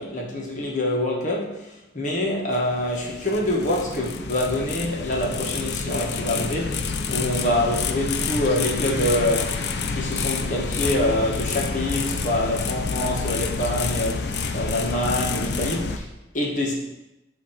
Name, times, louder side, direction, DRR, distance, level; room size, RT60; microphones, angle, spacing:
voice 1, 0.0-9.6 9.9-16.7, left 1 dB, 45° left, -2 dB, 1.4 m, -26 dB
sound 1, 2.5-16.0, left 4 dB, 65° left, 0.5 m, -28 dB
8.3 x 2.9 x 5.8 m, 0.94 s
head